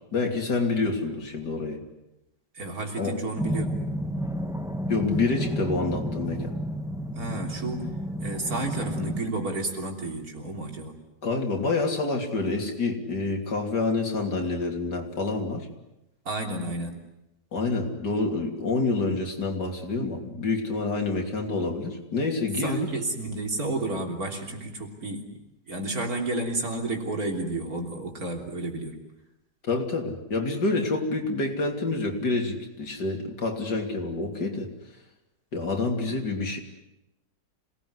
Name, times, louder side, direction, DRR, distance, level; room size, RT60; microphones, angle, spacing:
voice 1, 0.1-1.8 3.0-3.2 4.9-6.5 11.2-15.7 17.5-22.9 29.6-34.7 35.5-36.6, left 3 dB, 75° left, 3 dB, 3.6 m, -27 dB
voice 2, 2.5-3.8 7.1-7.9 8.2-11.0 16.3-17.0 22.6-25.3 25.7-29.0, right 2 dB, 55° right, 2 dB, 3.9 m, -31 dB
sound 1, 3.4-9.2, equal, ahead, 1.0 m, -31 dB
27.0 x 19.0 x 9.7 m, 0.90 s
omnidirectional pair, 1.8 m